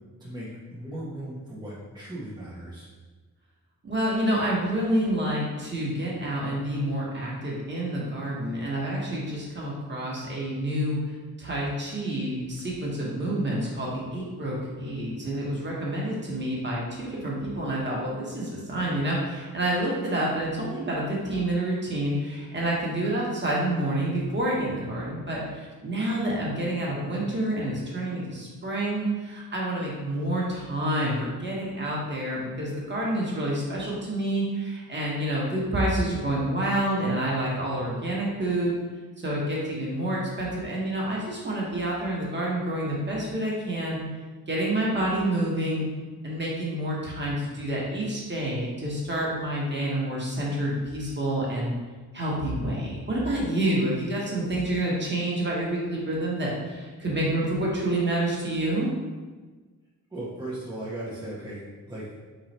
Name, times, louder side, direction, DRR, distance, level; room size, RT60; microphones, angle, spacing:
voice 1, 0.2-2.9 60.1-62.0, right 1 dB, 10° right, -8 dB, 0.8 m, -37 dB
voice 2, 3.8-11.0 11.4-38.7 39.2-44.0 44.5-45.8 46.2-51.7 52.1-58.9, right 1 dB, 30° right, -4 dB, 1.2 m, -28 dB
3.7 x 3.2 x 4.2 m, 1.3 s
wide cardioid pair, 120°, 35 cm